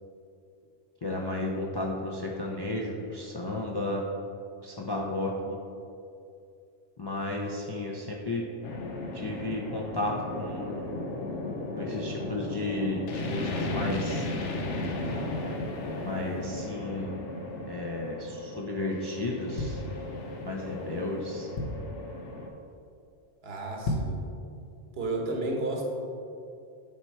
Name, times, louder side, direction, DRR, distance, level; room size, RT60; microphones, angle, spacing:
voice 1, 1.0-4.0 4.6-5.6 7.0-8.4 9.1-10.9 11.8-14.3 16.1-17.2 17.7-19.8 20.5-21.5, left 2 dB, 35° left, -2 dB, 0.4 m, -33 dB
sound 1, 8.6-22.5, left 2 dB, 85° left, 1.0 m, -35 dB
sound 2, 19.5-20.5 21.0-21.1 21.3-22.0 22.5-22.8 23.0-23.1 23.7-24.3 24.7-24.8, left 1 dB, 60° left, 0.9 m, -33 dB
voice 2, 23.4-24.2 25.0-25.8, right 2 dB, 65° right, 0 dB, 1.2 m, -32 dB
7.2 x 4.4 x 4.5 m, 2.5 s
omnidirectional pair, 1.2 m